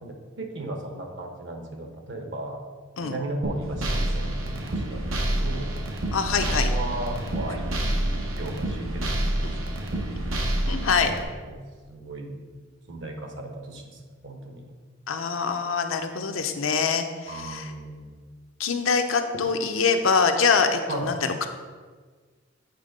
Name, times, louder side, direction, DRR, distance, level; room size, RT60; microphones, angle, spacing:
voice 1, 0.0-2.6 3.0-5.7 6.6-10.1 11.2-11.6 11.9-12.4 12.9-14.6 17.3-18.2 20.9-21.1, right 1 dB, 60° right, 3 dB, 1.0 m, -36 dB
sound 1, 3.4-11.2, right 1 dB, 90° right, 0.9 m, -28 dB
voice 2, 6.1-6.7 10.4-11.1 15.1-17.7 18.6-21.5, left 5 dB, 80° left, 6 dB, 0.6 m, -24 dB
8.3 x 3.6 x 5.2 m, 1.5 s
head